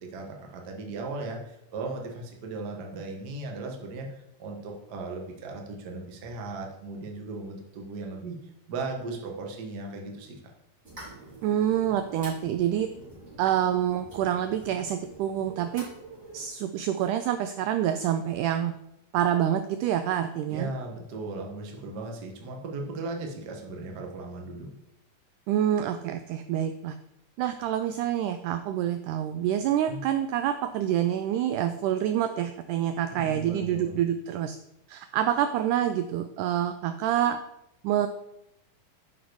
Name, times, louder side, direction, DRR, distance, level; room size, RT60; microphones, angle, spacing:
voice 1, 0.0-8.4 8.7-10.3 20.5-24.7 29.9-30.0 33.1-34.0, right 3 dB, 55° right, 2 dB, 1.1 m, -37 dB
sound 1, 10.8-16.5, right 2 dB, 20° right, 4.0 m, -46 dB
voice 2, 11.4-12.9 13.4-15.9 16.3-18.7 19.1-20.7 25.5-27.0 27.4-34.6 34.9-37.4 37.8-38.1, right 10 dB, 90° right, 9 dB, 1.8 m, -27 dB
10.5 x 6.1 x 4.7 m, 0.83 s
omnidirectional pair, 4.1 m